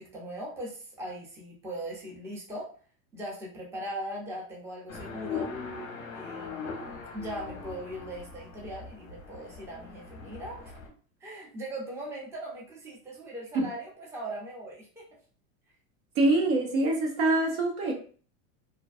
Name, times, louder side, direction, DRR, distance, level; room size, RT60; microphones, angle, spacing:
voice 1, 0.0-2.7 3.1-5.5 6.1-10.8 11.2-15.0, right 1 dB, 5° right, -3 dB, 0.5 m, -40 dB
sound 1, 4.9-10.9, left 5 dB, 35° left, 0.6 m, -40 dB
voice 2, 16.2-17.9, right 2 dB, 80° right, 0 dB, 1.1 m, -24 dB
2.4 x 2.2 x 2.3 m, 0.41 s
supercardioid pair, 140°, 41 cm